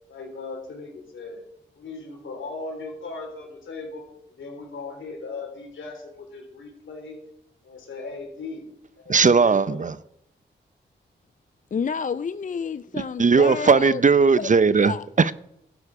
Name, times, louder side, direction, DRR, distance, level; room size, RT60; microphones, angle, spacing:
voice 1, 0.1-1.4 1.8-7.2 7.6-8.7 9.0-9.9, left 3 dB, 80° left, 3.8 m, -38 dB
voice 2, 9.1-10.0 12.9-15.3, right 5 dB, 40° right, 0.6 m, -18 dB
voice 3, 11.7-14.0 14.4-14.5 14.8-15.0, left 6 dB, 40° left, 0.4 m, -29 dB
12.0 x 9.8 x 4.9 m
cardioid pair, 50°, 20 cm